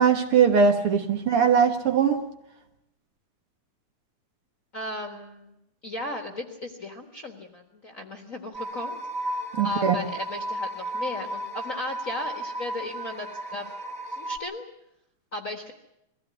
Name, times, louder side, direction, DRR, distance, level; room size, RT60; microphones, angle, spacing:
voice 1, 0.0-2.2 9.6-10.0, right 6 dB, 55° right, 2.0 m, -20 dB
voice 2, 4.7-5.6 5.8-9.0 9.6-13.7 14.1-14.7 15.3-15.7, left 1 dB, 40° left, 1.3 m, -36 dB
sound 1, 8.5-14.4, right 1 dB, 10° right, 3.5 m, -33 dB
22.0 x 15.5 x 9.4 m
omnidirectional pair, 3.3 m